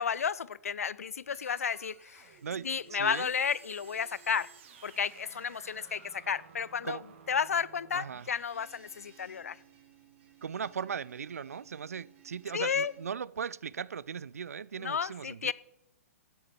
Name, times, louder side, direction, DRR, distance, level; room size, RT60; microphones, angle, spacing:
voice 1, 0.0-2.3 2.6-4.5 4.8-7.0 7.3-9.6 12.5-12.9 14.8-15.5, left 7 dB, 70° left, 0.4 m, -32 dB
sound 1, 1.3-13.1, right 7 dB, 50° right, 1.7 m, -57 dB
voice 2, 2.4-3.3 6.8-7.0 7.9-8.3 10.4-15.5, right 7 dB, 70° right, 0.3 m, -38 dB
12.0 x 8.9 x 4.4 m
figure-of-eight pair, 115°, 8 cm